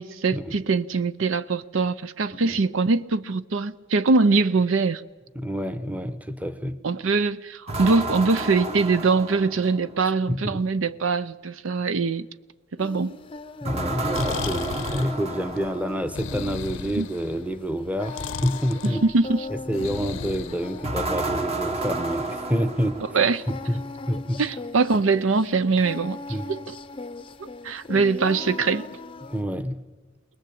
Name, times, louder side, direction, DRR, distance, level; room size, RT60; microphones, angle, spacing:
voice 1, 0.0-5.0 6.8-12.3 12.8-13.2 16.9-17.1 18.8-19.5 23.1-23.5 24.4-26.2 26.5-26.6 27.4-28.9, right 4 dB, 75° right, 0.6 m, -23 dB
voice 2, 5.3-6.8 10.3-10.6 13.6-19.0 19.5-23.0 23.5-24.4 26.3-26.5 29.2-29.8, equal, 10° right, 0.9 m, -28 dB
sound 1, 7.7-10.0 13.6-16.2 20.8-23.5, right 2 dB, 30° right, 1.2 m, -31 dB
Singing, 12.8-29.4, left 3 dB, 25° left, 0.6 m, -39 dB
Breathing, 13.8-21.3, left 5 dB, 70° left, 0.7 m, -36 dB
22.0 x 20.5 x 8.6 m
head